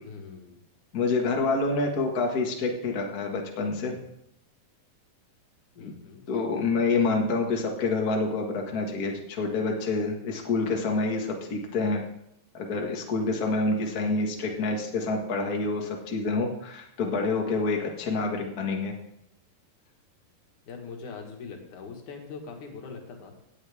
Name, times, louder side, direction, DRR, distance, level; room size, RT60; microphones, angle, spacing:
voice 1, 0.1-0.6 1.7-1.9 5.8-6.3 13.9-14.6 18.3-18.6 20.7-23.4, left 5 dB, 60° left, 2 dB, 3.1 m, -43 dB
voice 2, 0.9-4.0 5.8-5.9 6.3-12.0 12.5-18.9, left 3 dB, 40° left, 1 dB, 1.5 m, -27 dB
17.0 x 10.0 x 3.6 m, 0.78 s
omnidirectional pair, 4.1 m